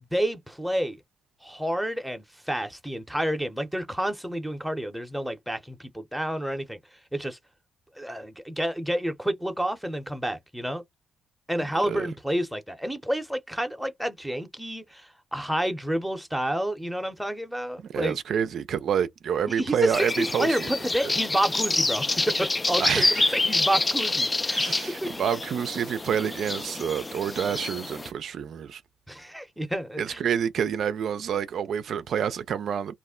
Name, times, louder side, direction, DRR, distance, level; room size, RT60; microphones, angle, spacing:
voice 1, 0.1-1.0 1.4-6.8 7.1-7.4 8.0-10.8 11.5-18.1 19.6-24.7 25.0-25.1 29.1-30.2, equal, ahead, 0.7 m, -29 dB
voice 2, 17.8-20.7 21.0-21.1 22.8-23.4 24.5-28.8 30.0-32.9, right 8 dB, 65° right, 0.3 m, -28 dB
sound 1, 19.9-28.1, left 2 dB, 20° left, 0.3 m, -27 dB
2.4 x 2.0 x 3.6 m
cardioid pair, 80°, 0 cm